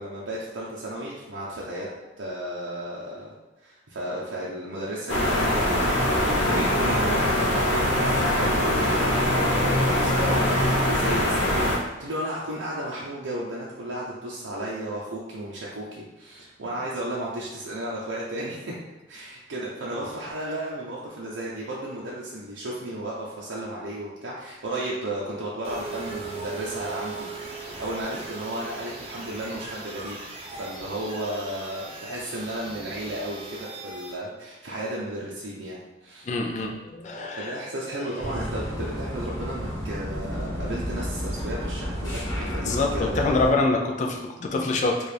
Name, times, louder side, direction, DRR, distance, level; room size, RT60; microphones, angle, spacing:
voice 1, 0.0-3.3 3.6-5.9 6.2-18.8 19.1-30.2 30.6-36.3 37.4-43.5, right 1 dB, 85° right, -5 dB, 0.6 m, -34 dB
sound 1, 5.1-11.8, left 1 dB, 75° left, 0.9 m, -22 dB
sound 2, 25.6-34.1, right 3 dB, 30° right, 0.7 m, -39 dB
voice 2, 36.3-37.6 42.6-45.1, left 3 dB, 40° left, 2 dB, 0.4 m, -25 dB
sound 3, 38.2-43.5, equal, 20° left, 1.3 m, -31 dB
4.6 x 2.4 x 3.3 m, 1.0 s
head